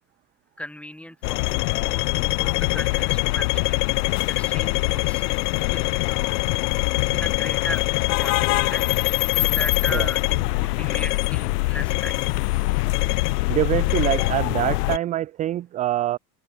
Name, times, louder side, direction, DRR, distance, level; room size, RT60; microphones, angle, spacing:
voice 1, 0.6-1.4 1.8-5.2 5.7-5.9 7.1-7.8 8.1-12.3, left 1 dB, 5° left, 2.4 m, -37 dB
sound 1, 1.2-15.0, left 23 dB, 65° left, 1.3 m, -23 dB
voice 2, 13.5-16.2, right 13 dB, 20° right, 0.3 m, -25 dB
open air
hypercardioid pair, 90°, 50 cm